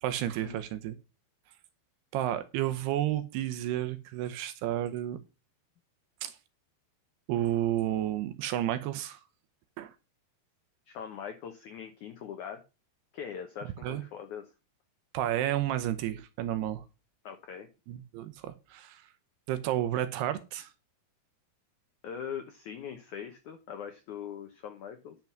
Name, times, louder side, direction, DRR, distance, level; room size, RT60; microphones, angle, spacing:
voice 1, 0.0-1.0 2.1-5.2 6.2-6.3 7.3-9.2 9.8-9.9 13.8-14.0 15.1-16.8 17.9-19.0 19.5-20.7, right 12 dB, 75° right, 2.7 m, -31 dB
voice 2, 10.9-12.6 13.1-14.5 17.2-17.7 22.0-25.2, left 8 dB, 85° left, 1.7 m, -41 dB
10.5 x 5.9 x 5.9 m
omnidirectional pair, 5.1 m